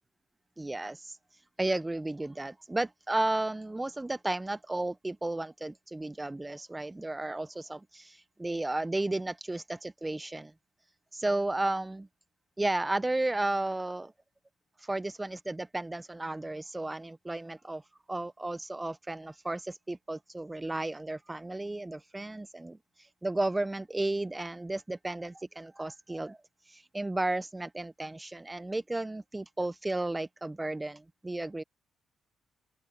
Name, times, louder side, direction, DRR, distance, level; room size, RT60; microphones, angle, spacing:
voice 1, 0.6-10.5 11.1-12.1 12.6-14.1 14.8-31.6, right 2 dB, 15° right, 0.3 m, -33 dB
open air
cardioid pair, 90°, 0 cm